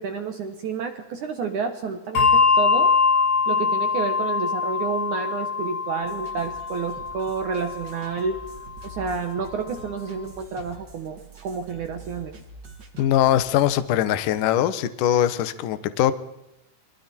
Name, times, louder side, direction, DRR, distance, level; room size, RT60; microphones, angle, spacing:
voice 1, 0.0-2.9 3.5-8.4 8.8-12.4, right 5 dB, 75° right, 7 dB, 1.8 m, -30 dB
Bell, 2.1-9.0, left 5 dB, 45° left, 2.0 m, -23 dB
sound 1, 6.0-13.7, right 3 dB, 35° right, 1.9 m, -45 dB
voice 2, 13.0-16.1, left 11 dB, 85° left, 12 dB, 1.8 m, -21 dB
28.0 x 23.5 x 4.5 m, 0.87 s
omnidirectional pair, 5.6 m